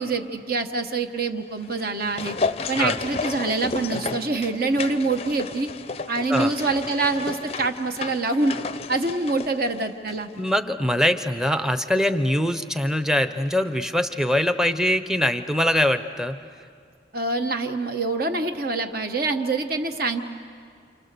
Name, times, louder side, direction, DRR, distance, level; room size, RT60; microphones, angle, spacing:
voice 1, 0.0-2.4 2.7-5.7 6.1-8.6 8.9-10.3 17.1-20.2, right 3 dB, 50° right, 6 dB, 1.2 m, -25 dB
sound 1, 1.6-10.2 10.5-10.6, left 4 dB, 30° left, 0.6 m, -32 dB
voice 2, 10.4-16.4, left 1 dB, 5° right, 10 dB, 0.8 m, -23 dB
28.5 x 28.0 x 6.8 m, 2.2 s
head